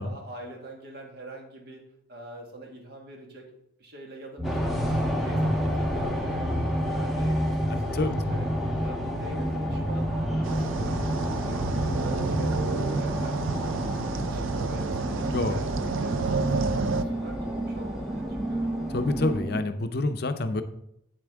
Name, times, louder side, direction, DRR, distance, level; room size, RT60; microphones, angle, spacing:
voice 1, 0.0-1.8 2.1-3.5 3.8-7.9 8.3-8.5 8.8-11.2 11.4-18.7, right 1 dB, 50° right, 1 dB, 1.6 m, -44 dB
sound 1, 4.4-19.4, equal, ahead, 1.2 m, -34 dB
sound 2, 4.4-19.6, equal, 20° right, 1.0 m, -30 dB
sound 3, 10.4-17.0, right 4 dB, 80° right, 0.4 m, -30 dB
voice 2, 18.9-20.6, left 2 dB, 50° left, 9 dB, 0.6 m, -27 dB
8.4 x 7.1 x 3.5 m, 0.77 s
head